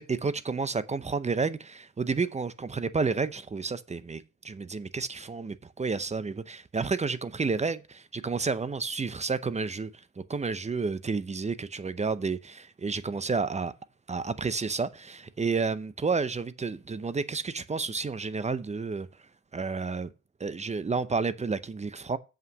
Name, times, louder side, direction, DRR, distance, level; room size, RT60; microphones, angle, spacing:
voice 1, 0.0-9.9 10.3-13.7 14.1-19.1 19.5-20.1 20.4-22.2, right 4 dB, 20° right, 0.7 m, -30 dB
7.5 x 5.6 x 6.3 m
cardioid pair, 90°, 30 cm